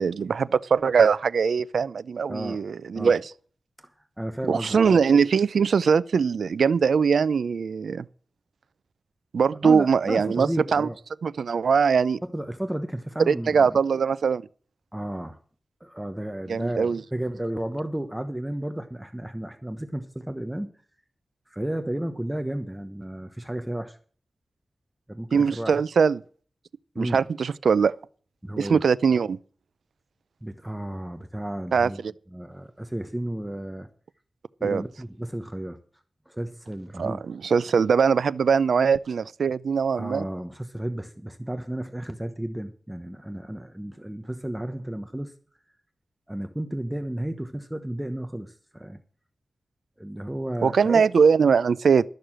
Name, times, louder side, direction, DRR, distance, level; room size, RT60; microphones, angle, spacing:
voice 1, 0.0-3.3 4.5-8.1 9.3-10.9 11.2-12.2 13.2-14.4 16.5-17.0 25.3-26.2 27.0-27.9 28.6-29.4 31.7-32.1 34.6-34.8 37.0-40.2 50.6-52.0, right 6 dB, 90° right, 0.4 m, -21 dB
voice 2, 4.2-5.0 9.6-11.0 12.3-13.8 14.9-15.4 15.8-20.7 21.5-24.0 25.1-25.8 26.9-27.2 28.4-28.8 30.4-32.0 32.3-33.9 34.6-35.8 36.3-37.2 39.9-45.3 46.3-49.0 50.0-51.0, right 1 dB, 10° right, 1.0 m, -33 dB
12.5 x 6.6 x 7.5 m
wide cardioid pair, 85°, 0 cm